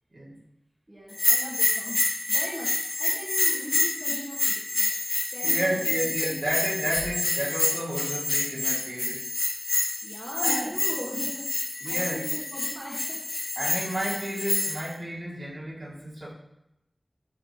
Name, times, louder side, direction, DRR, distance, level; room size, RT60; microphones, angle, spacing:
voice 1, 0.1-0.4 5.4-9.3 10.4-10.7 11.8-12.3 13.5-16.3, right 1 dB, 55° right, -7 dB, 3.2 m, -31 dB
voice 2, 0.9-4.9 5.3-6.3 10.0-13.2, right 1 dB, 30° right, -7 dB, 2.0 m, -39 dB
Bell, 1.1-14.9, left 2 dB, 75° left, 0.8 m, -27 dB
12.0 x 4.4 x 3.3 m, 0.83 s
wide cardioid pair, 45°, 0 cm